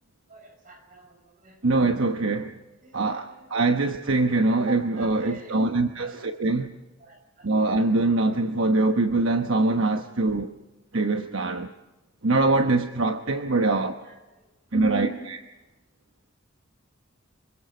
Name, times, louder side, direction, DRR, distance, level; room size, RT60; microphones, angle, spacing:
voice 1, 0.3-1.6 2.8-3.5 4.7-6.2 7.0-7.5 13.5-13.7 14.0-14.2 14.7-15.2, right 5 dB, 45° right, 6.0 m, -40 dB
voice 2, 1.6-2.5 2.9-6.7 7.4-10.5 10.9-11.7 12.2-13.9 14.7-15.4, right 2 dB, 70° right, 1.1 m, -23 dB
26.0 x 24.5 x 5.2 m
head